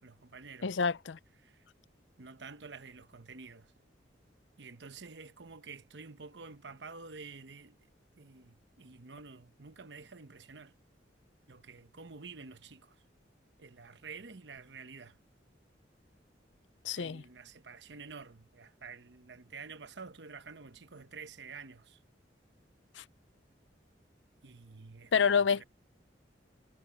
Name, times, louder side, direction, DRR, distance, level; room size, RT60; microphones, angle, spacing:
voice 1, 0.0-0.8 1.4-1.7 2.2-3.7 4.6-7.8 8.2-10.7 11.5-13.0 13.6-15.2 17.0-22.0 24.4-25.6, right 4 dB, 70° right, 1.0 m, -49 dB
voice 2, 0.6-1.2 16.8-17.2 23.0-23.1 25.1-25.6, left 6 dB, 85° left, 0.6 m, -28 dB
head